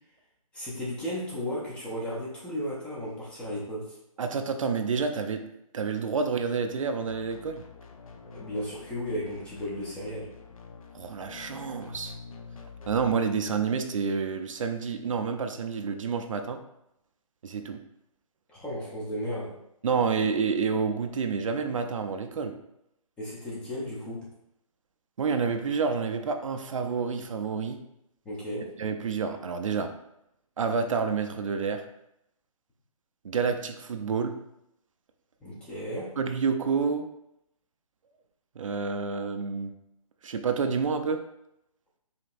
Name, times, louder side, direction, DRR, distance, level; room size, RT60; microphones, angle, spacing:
voice 1, 0.5-4.0 8.2-10.3 18.5-19.6 23.2-24.3 28.3-28.7 35.4-36.2, equal, 5° left, -6 dB, 0.5 m, -34 dB
voice 2, 4.2-5.4 5.7-7.6 10.9-12.1 12.9-16.6 17.4-17.8 19.8-22.5 25.2-27.8 28.8-29.9 30.6-31.8 33.2-34.4 36.2-37.1 38.6-39.7 40.2-41.2, right 5 dB, 65° right, 6 dB, 0.5 m, -29 dB
sound 1, 7.1-13.2, left 5 dB, 70° left, 0.6 m, -46 dB
5.1 x 2.8 x 2.5 m, 0.81 s
hypercardioid pair, 150°, 18 cm